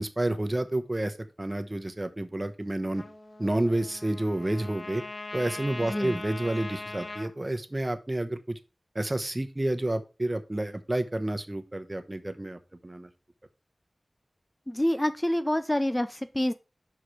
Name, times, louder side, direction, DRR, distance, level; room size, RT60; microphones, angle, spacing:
voice 1, 0.0-3.0 3.4-5.0 5.3-8.6 8.9-13.1, right 1 dB, 30° right, 1.0 m, -30 dB
Trumpet, 2.9-7.3, left 3 dB, 55° left, 1.1 m, -40 dB
voice 2, 5.9-6.2 14.7-16.5, left 1 dB, 20° left, 0.5 m, -27 dB
6.0 x 4.9 x 4.8 m
wide cardioid pair, 45°, 0 cm